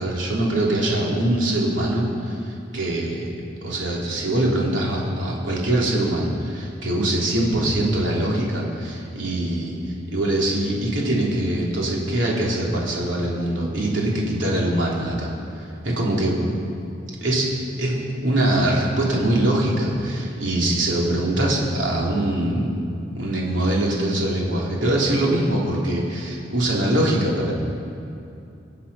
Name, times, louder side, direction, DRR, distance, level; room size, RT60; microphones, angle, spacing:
voice 1, 0.0-3.3 3.6-9.8 10.1-15.3 15.6-16.4 17.2-17.5 17.8-22.7 23.1-27.5, right 1 dB, 85° right, -3 dB, 3.2 m, -23 dB
23.5 x 8.4 x 5.6 m, 2.6 s
head